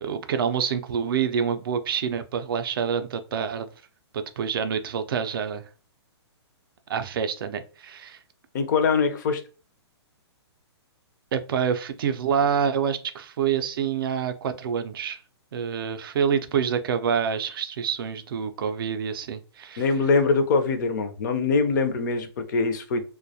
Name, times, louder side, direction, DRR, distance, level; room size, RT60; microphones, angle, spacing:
voice 1, 0.0-3.7 4.1-5.7 6.9-8.2 11.3-15.2 15.5-19.9, right 7 dB, 55° right, 0.4 m, -27 dB
voice 2, 8.5-9.4 19.8-23.0, left 4 dB, 40° left, 0.4 m, -23 dB
2.2 x 2.1 x 2.6 m
hypercardioid pair, 160°, 15 cm